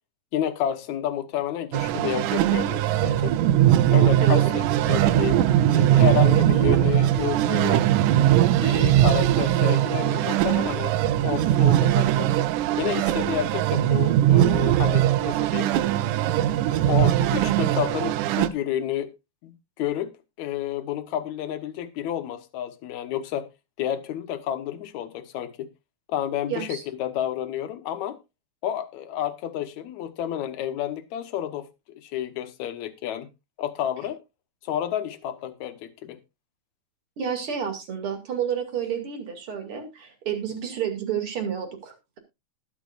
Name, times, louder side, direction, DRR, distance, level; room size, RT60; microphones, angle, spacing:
voice 1, 0.3-3.4 3.9-7.8 8.6-11.0 11.2-12.3 12.8-15.7 16.7-19.2 19.4-23.5 23.8-25.7 26.1-28.2 28.6-33.3 33.6-34.2 34.6-36.2, left 11 dB, 75° left, 2.4 m, -30 dB
sound 1, 1.7-18.5, right 12 dB, 90° right, 2.2 m, -20 dB
voice 2, 4.2-4.6 26.5-26.8 37.2-42.2, right 8 dB, 45° right, 3.0 m, -30 dB
20.0 x 7.1 x 2.5 m
omnidirectional pair, 3.4 m